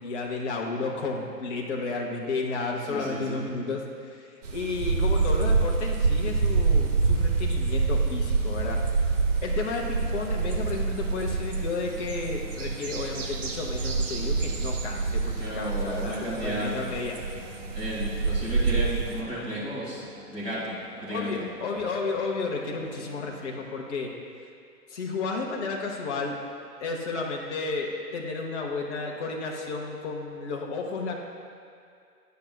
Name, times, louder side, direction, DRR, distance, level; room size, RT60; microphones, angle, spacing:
voice 1, 0.0-8.8 9.4-17.2 21.1-24.1 24.9-26.4 26.8-31.1, left 3 dB, 45° left, 0 dB, 0.9 m, -32 dB
voice 2, 2.9-3.4 15.4-16.9 17.7-20.0 20.3-21.4, equal, 10° right, -10 dB, 1.5 m, -33 dB
sound 1, 4.4-19.2, right 4 dB, 50° right, 0.8 m, -27 dB
sound 2, 9.9-23.5, left 2 dB, 35° right, 1.6 m, -50 dB
10.5 x 5.7 x 2.3 m, 2.3 s
figure-of-eight pair, 135°, 49 cm